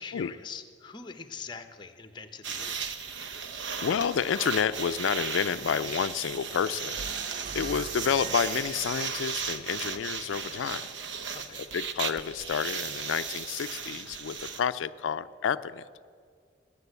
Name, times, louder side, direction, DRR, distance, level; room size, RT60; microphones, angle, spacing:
voice 1, 0.0-2.9 11.3-11.6, left 5 dB, 25° left, 9 dB, 0.8 m, -43 dB
sound 1, 2.4-14.6, right 6 dB, 70° right, 0.8 m, -36 dB
voice 2, 3.8-10.9 11.7-15.8, left 7 dB, 85° left, 12 dB, 0.4 m, -30 dB
sound 2, 7.0-10.4, right 5 dB, 45° right, 0.3 m, -44 dB
19.0 x 7.5 x 8.1 m, 2.1 s
head